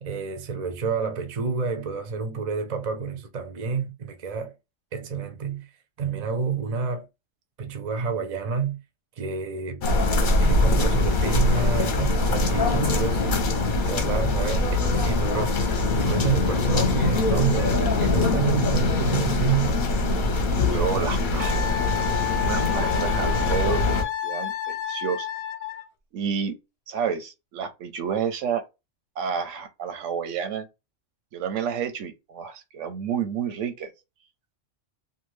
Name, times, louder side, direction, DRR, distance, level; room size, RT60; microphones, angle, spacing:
voice 1, 0.0-4.5 4.9-5.7 6.0-7.1 7.6-8.8 9.2-9.8 10.4-13.4 13.9-19.8, right 5 dB, 45° right, 0.5 m, -29 dB
sound 1, 9.8-24.0, left 2 dB, 50° left, 0.7 m, -23 dB
voice 2, 20.5-21.9 22.4-25.3 26.1-26.6 26.9-28.6 29.2-30.7 31.3-33.9, right 7 dB, 85° right, 1.0 m, -30 dB
Wind instrument woodwind instrument, 21.4-25.9, left 11 dB, 70° left, 0.3 m, -30 dB
2.7 x 2.4 x 3.1 m
omnidirectional pair, 1.3 m